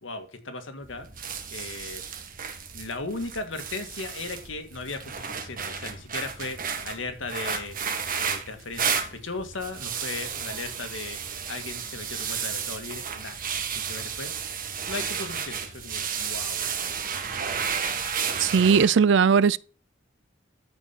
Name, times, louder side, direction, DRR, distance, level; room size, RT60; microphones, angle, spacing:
voice 1, 0.0-1.1 1.5-2.0 2.7-14.3 14.9-16.6, left 3 dB, 85° left, 2.1 m, -37 dB
sound 1, 0.8-18.9, right 6 dB, 45° right, 1.6 m, -32 dB
voice 2, 18.4-19.6, right 6 dB, 65° right, 0.4 m, -18 dB
13.5 x 5.4 x 5.8 m
head